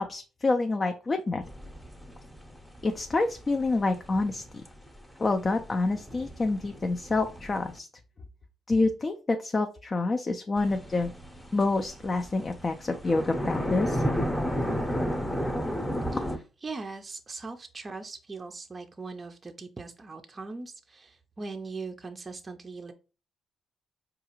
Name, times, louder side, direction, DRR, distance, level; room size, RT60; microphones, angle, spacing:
voice 1, 0.0-1.4 2.8-4.4 5.2-7.9 8.7-11.1 11.5-14.0, left 3 dB, 30° left, 5 dB, 0.4 m, -27 dB
sound 1, 1.4-7.8 10.6-16.4, equal, 5° left, 0.7 m, -33 dB
voice 2, 16.6-22.9, right 3 dB, 25° right, 4 dB, 0.5 m, -40 dB
4.7 x 2.3 x 3.0 m, 0.33 s
cardioid pair, 90°, 0 cm